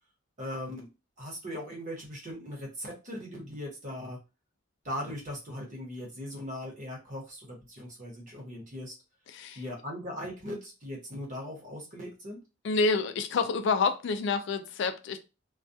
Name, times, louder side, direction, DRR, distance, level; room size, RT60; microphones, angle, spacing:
voice 1, 0.4-0.9 1.2-4.2 4.8-8.9 9.5-12.4, equal, 40° right, 0.9 m, -39 dB
voice 2, 9.3-9.6 12.6-15.2, left 4 dB, 60° left, 0.3 m, -28 dB
2.3 x 2.2 x 2.6 m
head